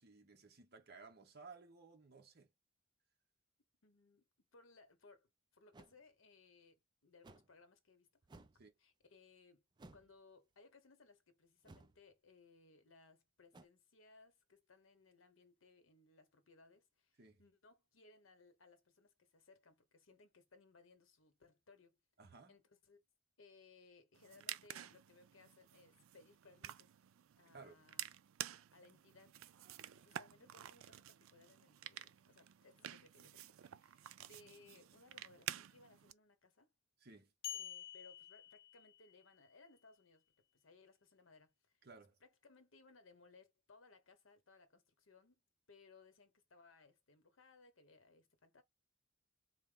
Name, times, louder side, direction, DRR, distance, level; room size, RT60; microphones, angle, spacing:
voice 1, 0.0-2.5 8.6-8.7 17.2-17.4 22.2-22.6 27.5-27.8 37.0-37.3 41.8-42.2, right 4 dB, 50° right, 1.0 m, -58 dB
voice 2, 3.8-4.3 4.5-8.1 8.8-9.6 9.9-22.0 22.5-23.0 23.4-26.9 27.4-28.1 28.7-29.6 29.9-36.7 37.5-40.2 40.5-41.8 42.2-45.4 45.7-48.6, left 3 dB, 80° left, 1.0 m, -65 dB
sound 1, 5.7-6.0 7.2-7.5 8.2-8.6 9.8-10.1 11.6-12.0 13.5-13.7, right 2 dB, 20° right, 0.4 m, -59 dB
sound 2, 24.1-36.1, right 12 dB, 90° right, 0.4 m, -51 dB
sound 3, 37.4-39.3, left 11 dB, 45° left, 0.4 m, -49 dB
4.1 x 2.1 x 3.7 m
head